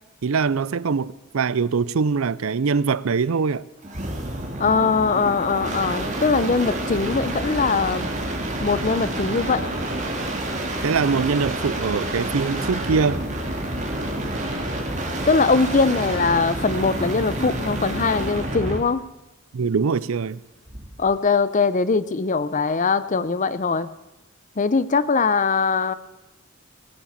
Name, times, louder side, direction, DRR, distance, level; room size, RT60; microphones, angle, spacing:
voice 1, 0.2-3.6 10.8-13.2 19.5-20.4, right 5 dB, 80° right, 0.5 m, -23 dB
sound 1, 3.8-18.9 20.7-21.1, right 1 dB, 35° right, 2.3 m, -28 dB
voice 2, 4.6-8.1 8.6-9.8 15.3-19.0 21.0-23.9 24.6-25.9, left 4 dB, 40° left, 0.6 m, -21 dB
17.5 x 10.0 x 7.3 m
head